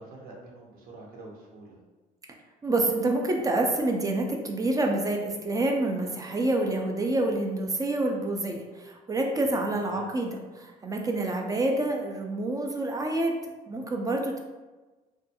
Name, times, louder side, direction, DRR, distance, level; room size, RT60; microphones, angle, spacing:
voice 1, 0.0-1.8 9.8-10.1, right 2 dB, 60° right, -2 dB, 0.8 m, -46 dB
voice 2, 2.6-13.4 13.7-14.4, right 2 dB, 20° right, 2 dB, 0.3 m, -27 dB
2.4 x 2.2 x 2.7 m, 1.2 s
cardioid pair, 110°, 17 cm